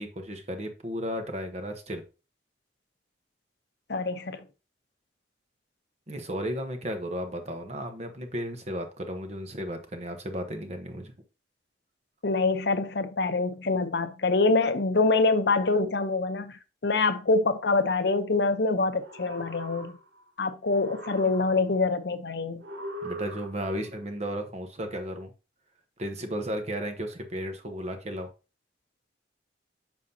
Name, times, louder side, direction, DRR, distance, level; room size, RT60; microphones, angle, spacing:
voice 1, 0.0-2.0 6.1-11.1 23.0-25.3 26.0-28.3, equal, 40° right, 1.1 m, -34 dB
voice 2, 3.9-4.4 12.2-20.0 20.4-22.6, left 3 dB, 70° left, 0.8 m, -25 dB
sound 1, 18.8-20.3 20.6-21.9 22.6-23.9, right 1 dB, 90° right, 1.8 m, -41 dB
7.5 x 5.5 x 2.8 m
head